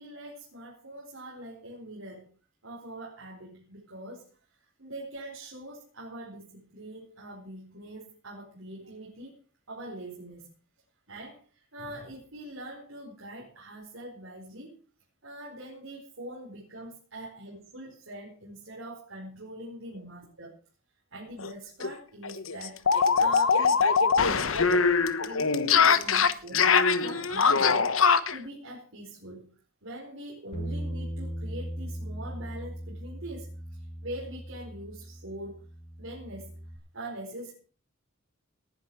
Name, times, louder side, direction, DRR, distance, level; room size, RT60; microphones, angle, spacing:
voice 1, 0.0-2.3 2.6-4.3 4.8-9.4 9.7-10.5 11.1-14.7 15.2-20.6 21.1-23.9 24.2-26.7 27.0-28.0 28.3-29.6 29.8-35.6 36.0-36.6 36.9-37.5, right 1 dB, 70° right, -2 dB, 4.6 m, -43 dB
sound 1, 21.4-21.5 21.8-21.9 22.2-28.4, left 5 dB, 80° left, 1.2 m, -22 dB
Bass guitar, 30.5-36.8, right 1 dB, 60° left, 5.7 m, -38 dB
19.0 x 10.5 x 4.8 m, 0.39 s
head